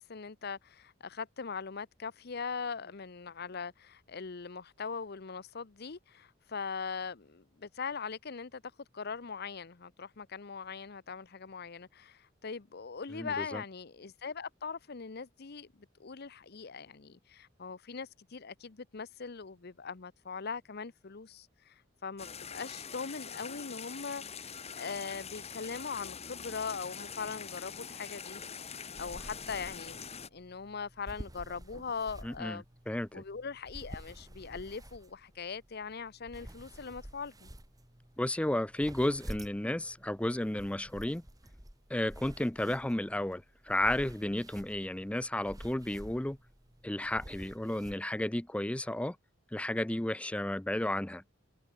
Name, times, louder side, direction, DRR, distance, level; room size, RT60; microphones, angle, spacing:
voice 1, 0.0-15.7 16.0-30.0 30.3-32.6 33.1-37.5, left 5 dB, 55° left, 0.8 m, -41 dB
voice 2, 13.1-13.6 32.2-33.2 38.2-41.2 41.9-46.4 46.8-49.2 49.5-51.2, left 1 dB, 5° left, 0.5 m, -33 dB
sound 1, 22.2-30.3, left 6 dB, 35° left, 1.8 m, -44 dB
sound 2, 28.9-48.0, equal, 20° right, 2.6 m, -50 dB
head